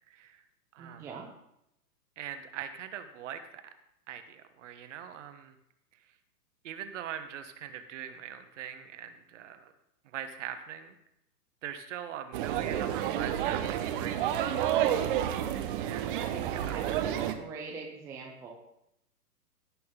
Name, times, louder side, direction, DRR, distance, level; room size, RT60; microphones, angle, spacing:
voice 1, 0.1-0.4 0.7-1.1 2.2-3.6 4.1-5.5 6.6-9.7 10.1-11.0 11.6-14.2 14.6-15.0 15.8-17.0, right 9 dB, 50° right, 9 dB, 1.2 m, -42 dB
voice 2, 0.8-1.3 16.1-18.5, right 5 dB, 5° right, -1 dB, 0.5 m, -42 dB
sound 1, 12.3-17.3, right 11 dB, 35° right, 0.8 m, -30 dB
17.0 x 6.2 x 3.7 m, 0.82 s
hypercardioid pair, 125°, 48 cm